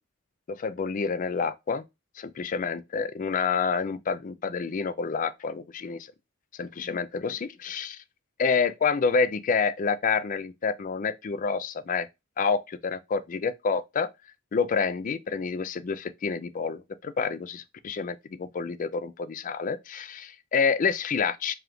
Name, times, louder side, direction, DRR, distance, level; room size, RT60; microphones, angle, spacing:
voice 1, 0.5-1.8 2.2-6.1 6.6-8.0 8.4-12.1 12.4-14.1 14.5-21.5, left 5 dB, 40° left, 0.4 m, -28 dB
4.9 x 2.4 x 2.9 m
head